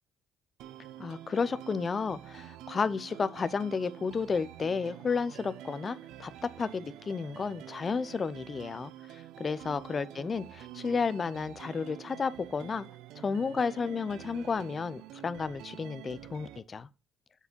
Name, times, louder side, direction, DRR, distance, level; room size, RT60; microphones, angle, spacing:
sound 1, 0.6-16.6, right 12 dB, 80° right, 0.6 m, -47 dB
voice 1, 1.0-12.9 13.2-16.9, left 5 dB, 35° left, 0.6 m, -32 dB
7.1 x 4.2 x 5.2 m
cardioid pair, 95°, 0 cm